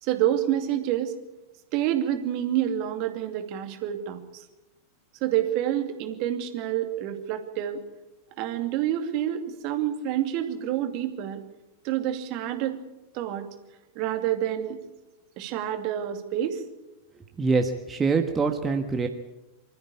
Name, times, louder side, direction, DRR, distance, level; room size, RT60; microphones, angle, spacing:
voice 1, 0.0-1.2 1.7-4.4 5.2-7.8 8.4-11.4 11.8-12.8 13.1-13.5 13.9-14.8 15.4-16.6, right 11 dB, 45° right, 6 dB, 2.5 m, -28 dB
voice 2, 17.4-19.1, right 4 dB, 15° right, 4 dB, 1.6 m, -24 dB
25.5 x 14.0 x 8.6 m, 1.0 s
figure-of-eight pair, 90°, 0 cm